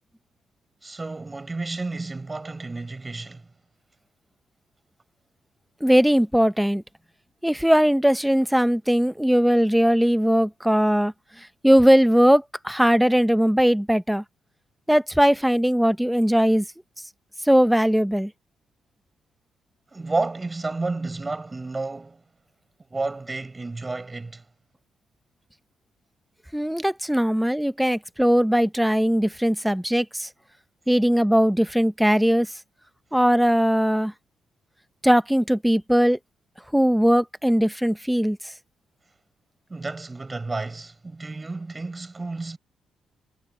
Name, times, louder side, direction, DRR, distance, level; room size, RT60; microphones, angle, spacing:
voice 1, 0.8-3.5 19.9-22.2 22.9-24.4 39.7-42.6, right 3 dB, 20° right, 6.7 m, -31 dB
voice 2, 5.8-6.8 7.4-11.1 11.6-14.2 14.9-16.6 17.4-18.3 26.5-30.3 30.9-32.5 33.1-34.1 35.0-36.2 36.7-38.4, equal, 5° right, 1.0 m, -19 dB
cardioid pair, 90°, 0 cm